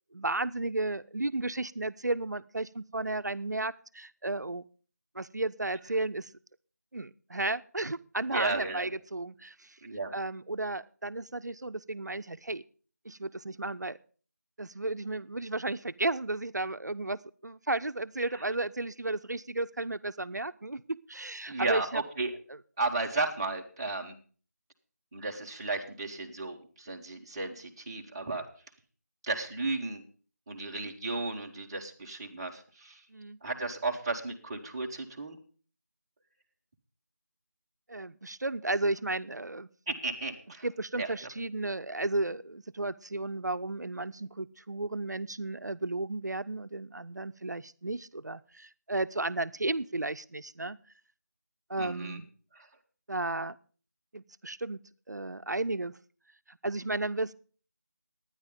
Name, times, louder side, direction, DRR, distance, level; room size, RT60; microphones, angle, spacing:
voice 1, 0.1-4.6 5.1-6.3 6.9-9.8 10.1-12.6 13.0-14.0 14.6-22.0 22.5-22.6 26.1-26.2 33.1-33.4 37.9-39.7 40.6-50.8 51.7-52.3 53.1-53.6 54.1-54.8 55.1-55.9 56.5-57.3, right 2 dB, 80° right, 14 dB, 0.7 m, -33 dB
voice 2, 8.3-8.9 9.8-10.1 21.5-22.3 22.8-24.1 25.1-28.4 29.2-30.0 30.5-33.0 33.4-35.4 39.9-40.6 41.0-41.1 51.8-52.2 52.6-52.7, right 3 dB, 15° right, -3 dB, 1.1 m, -34 dB
11.5 x 9.9 x 5.1 m, 0.40 s
figure-of-eight pair, 170°, 9 cm